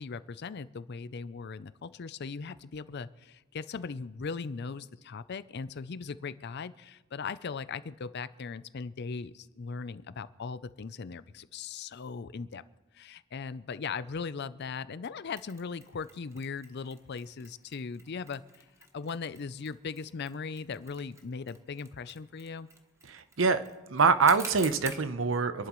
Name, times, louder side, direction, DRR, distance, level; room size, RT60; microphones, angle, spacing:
voice 1, 0.0-12.6 12.9-18.4 18.9-22.7, left 5 dB, 55° left, 15 dB, 0.5 m, -39 dB
Mechanisms, 15.4-25.1, right 2 dB, 15° right, 1.2 m, -50 dB
voice 2, 23.1-23.6 23.9-25.7, right 5 dB, 70° right, 12 dB, 0.8 m, -25 dB
27.0 x 11.5 x 3.1 m, 1.1 s
head